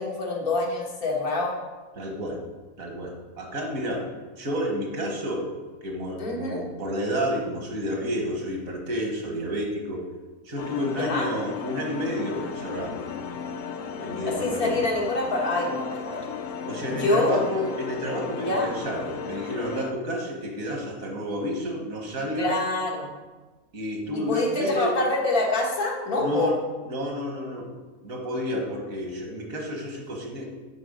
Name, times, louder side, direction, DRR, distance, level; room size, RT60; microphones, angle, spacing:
voice 1, 0.0-1.6 6.2-6.6 11.0-11.3 14.2-16.2 16.9-17.4 18.5-18.7 22.4-23.1 24.1-26.5, left 2 dB, 90° left, -2 dB, 1.9 m, -26 dB
voice 2, 2.0-2.4 2.8-4.0 4.4-5.5 5.8-10.1 10.5-13.0 14.0-14.8 16.7-22.5 23.7-24.9 26.2-26.5 26.9-27.7 28.0-30.4, equal, 70° right, 1 dB, 1.8 m, -30 dB
sound 1, 10.6-19.9, left 6 dB, 70° left, 0.9 m, -35 dB
8.6 x 4.1 x 5.3 m, 1.3 s
omnidirectional pair, 1.5 m